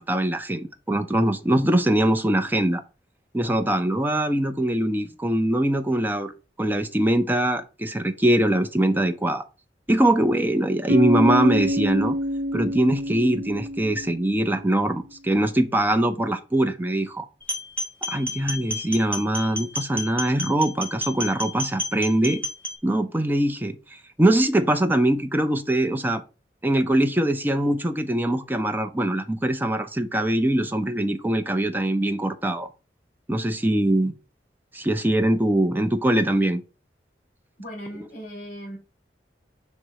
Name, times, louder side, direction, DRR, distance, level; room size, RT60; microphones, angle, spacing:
voice 1, 0.0-2.8 3.3-6.3 6.6-9.5 9.9-12.1 12.5-17.3 18.1-22.4 22.8-26.2 26.6-32.7 33.3-34.1 34.7-36.6, right 1 dB, 10° right, 0.6 m, -22 dB
Bass guitar, 10.9-14.7, equal, 65° right, 0.7 m, -26 dB
sound 1, 17.4-22.8, left 1 dB, 10° left, 1.1 m, -31 dB
voice 2, 37.6-38.8, equal, 50° left, 2.8 m, -38 dB
6.2 x 3.3 x 4.7 m
head